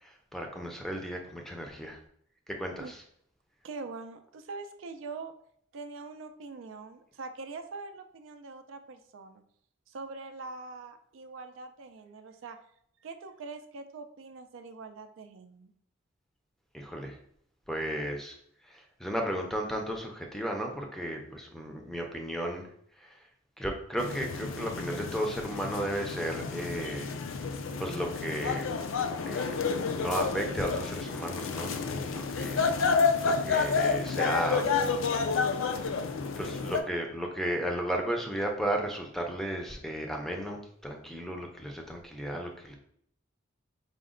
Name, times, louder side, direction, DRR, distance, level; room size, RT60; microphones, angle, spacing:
voice 1, 0.0-2.0 2.6-2.9 16.7-17.1 17.7-18.3 18.7-22.7 23.0-23.1 23.6-27.1 27.8-28.7 29.3-29.5 30.0-32.6 33.2-34.8 36.4-42.8, equal, ahead, 2 dB, 0.5 m, -34 dB
voice 2, 3.6-5.3 5.7-9.4 9.9-12.6 13.0-15.7, right 3 dB, 70° right, 8 dB, 0.4 m, -43 dB
sound 1, 24.0-36.8, left 5 dB, 75° left, 0.4 m, -30 dB
5.0 x 2.1 x 3.7 m, 0.68 s
head